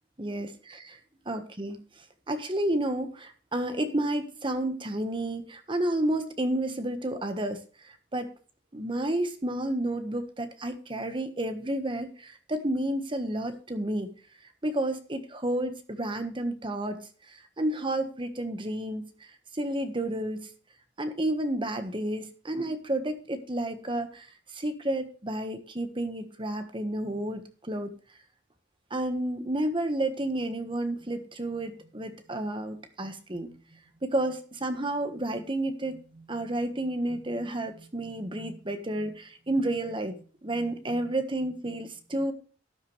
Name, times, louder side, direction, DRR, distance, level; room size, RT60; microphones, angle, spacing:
voice 1, 0.2-0.8 1.2-1.8 2.3-7.6 7.8-8.3 8.7-14.1 14.6-17.0 17.3-19.1 19.5-20.5 21.0-24.3 24.5-27.9 28.9-33.6 34.0-42.3, right 1 dB, 30° right, 9 dB, 1.4 m, -31 dB
12.5 x 10.0 x 3.3 m, 0.39 s
head